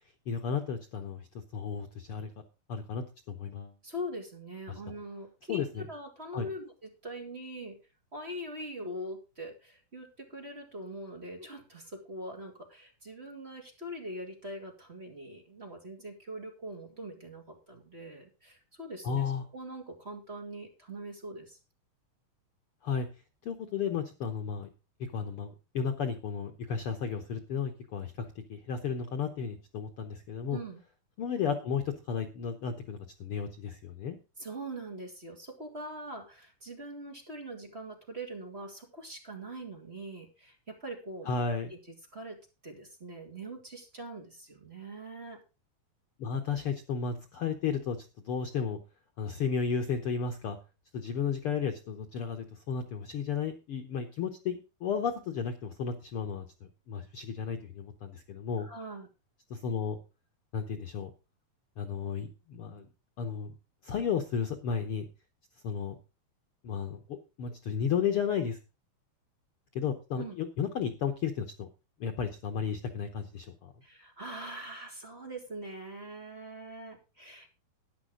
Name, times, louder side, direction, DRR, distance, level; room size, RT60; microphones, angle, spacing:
voice 1, 0.3-1.3 1.5-2.3 2.7-3.7 4.7-4.8 5.5-5.8 6.3-6.5 19.0-19.4 22.8-23.1 23.4-24.7 25.0-30.6 31.2-34.2 41.3-41.7 46.2-48.0 48.2-48.8 49.2-50.6 50.9-56.4 56.9-58.7 59.5-60.0 60.5-61.1 61.8-62.9 63.2-63.5 63.8-65.0 65.6-65.9 66.6-68.6 69.7-71.7 72.0-73.7, left 6 dB, 85° left, 6 dB, 1.2 m, -33 dB
voice 2, 3.8-7.8 8.1-19.2 19.5-21.6 30.5-30.8 34.4-41.3 41.7-42.4 42.6-45.4 58.6-59.1 70.2-70.3 73.8-77.5, right 1 dB, 20° right, 1 dB, 2.3 m, -42 dB
13.0 x 10.0 x 3.8 m, 0.30 s
omnidirectional pair, 4.1 m